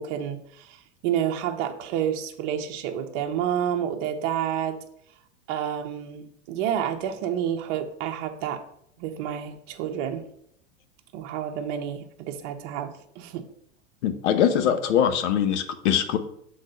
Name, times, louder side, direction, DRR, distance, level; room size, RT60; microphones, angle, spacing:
voice 1, 0.0-4.8 5.5-8.6 9.0-10.3 11.1-13.5, right 9 dB, 50° right, 5 dB, 1.0 m, -29 dB
voice 2, 14.0-16.2, left 9 dB, 75° left, 10 dB, 1.0 m, -22 dB
6.5 x 4.0 x 5.4 m, 0.70 s
supercardioid pair, 120°, 36 cm